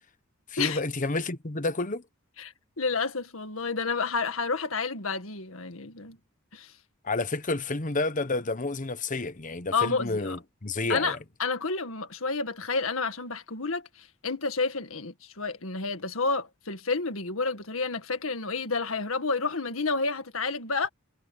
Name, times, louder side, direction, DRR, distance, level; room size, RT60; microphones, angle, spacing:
voice 1, 0.5-2.0 7.0-11.2, left 3 dB, 40° left, 1.1 m, -30 dB
voice 2, 2.4-6.2 6.5-6.7 9.7-10.4 10.9-20.9, left 4 dB, 75° left, 1.9 m, -30 dB
head